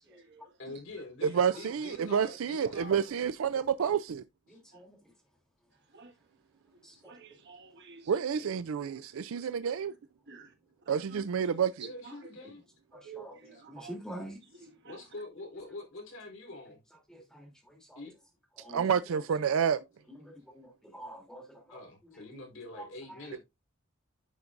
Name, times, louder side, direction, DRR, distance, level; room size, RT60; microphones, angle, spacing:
voice 1, 0.1-0.5 5.9-6.1 7.0-8.1 8.9-9.5 10.3-10.5 10.9-11.3 12.0-12.1 12.9-13.9 14.6-15.0, right 5 dB, 60° right, 1.6 m, -51 dB
voice 2, 0.6-3.1 4.5-4.6 8.3-8.6 11.8-12.6 13.5-13.6 14.8-16.8 18.0-18.2 21.7-23.4, left 2 dB, 65° left, 4.1 m, -45 dB
voice 3, 1.2-4.2 8.1-9.9 10.9-11.9 18.7-19.8, right 7 dB, 85° right, 0.4 m, -29 dB
voice 4, 4.5-5.0 6.8-7.1 12.9-14.4 17.1-18.0 18.6-19.2 20.1-21.8 22.2-22.4 22.7-23.4, right 1 dB, 5° left, 3.0 m, -47 dB
10.5 x 5.9 x 2.5 m
head